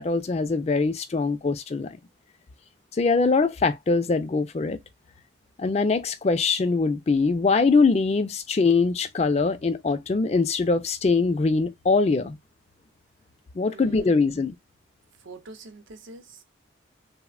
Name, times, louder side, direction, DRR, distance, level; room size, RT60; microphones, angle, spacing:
voice 1, 0.0-2.0 3.0-4.8 5.6-12.4 13.6-14.5, left 4 dB, 35° left, 0.3 m, -22 dB
voice 2, 13.6-14.3 15.2-16.4, right 3 dB, 80° right, 0.6 m, -45 dB
3.2 x 2.1 x 2.3 m
head